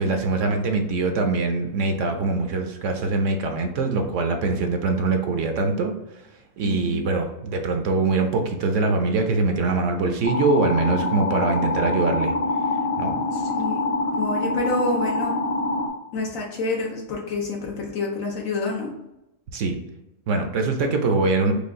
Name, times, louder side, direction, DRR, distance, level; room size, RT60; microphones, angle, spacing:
voice 1, 0.0-6.2 6.6-12.4 13.0-13.2 19.5-19.8 20.3-21.5, right 3 dB, 70° right, 5 dB, 0.9 m, -23 dB
voice 2, 6.6-7.1 13.3-15.4 16.1-18.9, left 3 dB, 75° left, -1 dB, 1.2 m, -28 dB
sound 1, 10.2-15.9, left 2 dB, 40° left, 0.6 m, -25 dB
5.0 x 2.3 x 3.5 m, 0.90 s
omnidirectional pair, 1.4 m